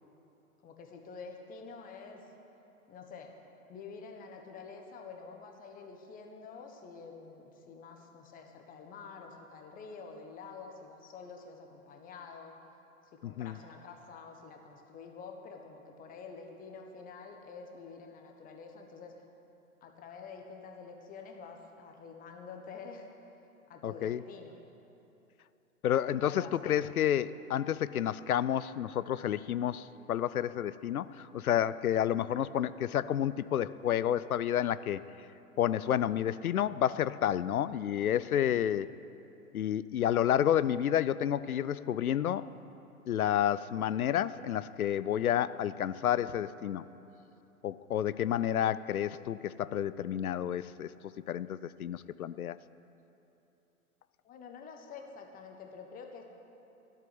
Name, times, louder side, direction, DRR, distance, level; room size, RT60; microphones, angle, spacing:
voice 1, 0.6-2.2 2.9-3.3 3.7-12.5 13.2-19.1 19.8-23.1 23.7-24.5 26.3-26.8 54.2-56.2, left 5 dB, 20° left, 3 dB, 1.3 m, -48 dB
voice 2, 13.2-13.6 23.8-24.2 25.8-35.0 35.6-38.9 39.5-42.5 43.1-46.9 47.6-50.9 51.3-52.6, left 10 dB, 70° left, 16 dB, 0.6 m, -30 dB
13.0 x 7.4 x 9.4 m, 2.9 s
figure-of-eight pair, 110°, 44 cm